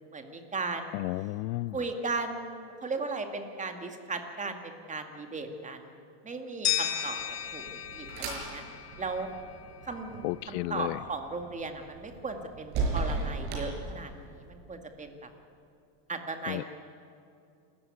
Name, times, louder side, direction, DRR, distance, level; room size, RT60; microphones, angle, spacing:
voice 1, 0.1-1.0 1.7-6.0 6.2-7.2 7.5-7.6 8.0-8.6 9.0-9.3 9.8-14.1 14.5-15.3 16.1-16.6, right 3 dB, 15° right, 6 dB, 2.1 m, -36 dB
voice 2, 0.9-1.8 10.2-11.0 16.5-16.6, left 20 dB, 80° left, 22 dB, 0.6 m, -32 dB
sound 1, 6.6-9.6, left 10 dB, 30° left, 1.8 m, -34 dB
sound 2, 7.1-14.5, right 3 dB, 50° right, 6.5 m, -37 dB
27.5 x 14.5 x 9.6 m, 2.6 s
supercardioid pair, 145°, 49 cm